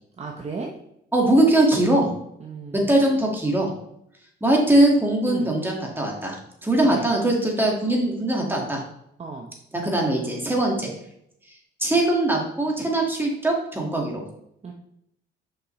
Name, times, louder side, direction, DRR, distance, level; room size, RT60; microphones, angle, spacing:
voice 1, 0.2-0.7 2.4-3.0 5.3-5.5 6.8-7.1 9.2-9.5 14.6-14.7, right 4 dB, 35° right, 1 dB, 0.8 m, -35 dB
voice 2, 1.1-2.1 2.7-3.7 4.4-6.4 6.6-8.8 9.7-10.9 11.8-14.2, right 1 dB, 10° right, -1 dB, 1.9 m, -21 dB
5.9 x 5.7 x 3.2 m, 0.76 s
cardioid pair, 90°, 20 cm